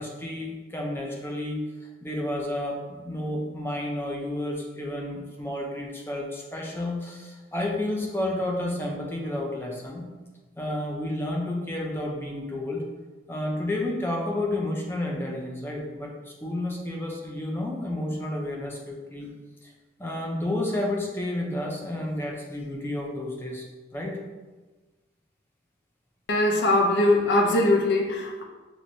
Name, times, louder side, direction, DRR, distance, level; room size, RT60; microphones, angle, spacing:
voice 1, 0.0-1.6 2.0-10.0 10.6-12.9 13.3-19.3 19.6-19.7 20.0-23.6 23.9-24.2, left 1 dB, 10° left, -1 dB, 0.5 m, -31 dB
voice 2, 26.3-28.4, left 1 dB, 75° left, 2 dB, 0.5 m, -21 dB
5.9 x 2.1 x 2.6 m, 1.2 s
head